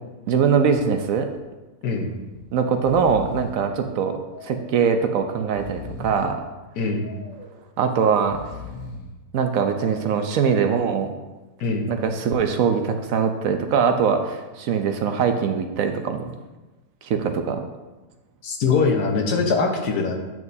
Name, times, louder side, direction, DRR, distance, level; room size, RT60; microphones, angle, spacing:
voice 1, 0.3-1.3 2.5-4.2 4.4-6.4 7.8-8.4 9.3-11.1 11.9-16.2 17.0-17.6, right 6 dB, 70° right, 6 dB, 0.9 m, -22 dB
Breathing, 0.6-1.0 1.3-1.4 2.2-2.4 2.7-3.7 4.3-4.9 5.4-6.4 7.0-7.6 8.2-9.2 9.7-10.4, left 4 dB, 90° left, 1.5 m, -39 dB
voice 2, 6.8-7.1 11.6-11.9 18.4-20.2, left 4 dB, 75° left, 1 dB, 1.5 m, -22 dB
8.9 x 6.0 x 2.7 m, 1.1 s
omnidirectional pair, 1.7 m